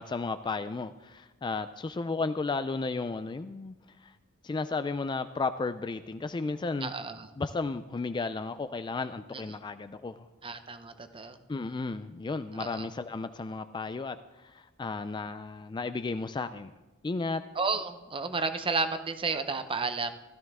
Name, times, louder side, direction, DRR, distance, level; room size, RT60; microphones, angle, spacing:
voice 1, 0.0-3.7 4.0-4.1 4.4-6.9 7.4-10.3 11.5-16.7 17.0-17.4, left 3 dB, 20° left, 11 dB, 0.3 m, -34 dB
voice 2, 6.8-7.3 10.4-11.4 12.5-12.9 17.6-20.1, right 4 dB, 25° right, 9 dB, 0.7 m, -32 dB
16.0 x 12.5 x 3.6 m, 1.1 s
head